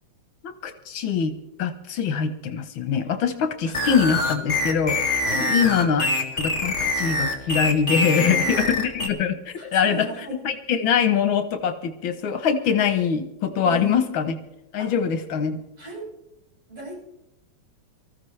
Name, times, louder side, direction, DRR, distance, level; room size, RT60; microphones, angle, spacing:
voice 1, 0.6-6.1 6.3-9.4 9.7-10.1 10.4-14.4 14.7-15.6, left 7 dB, 85° left, 7 dB, 1.8 m, -23 dB
sound 1, 3.7-9.1, left 2 dB, 25° left, 2.3 m, -24 dB
voice 2, 5.3-5.9 8.1-8.7 9.6-10.4 13.6-14.1 14.8-14.9 15.8-16.1 16.7-17.0, right 3 dB, 65° right, -6 dB, 7.9 m, -37 dB
24.5 x 14.5 x 3.3 m, 0.90 s
omnidirectional pair, 2.1 m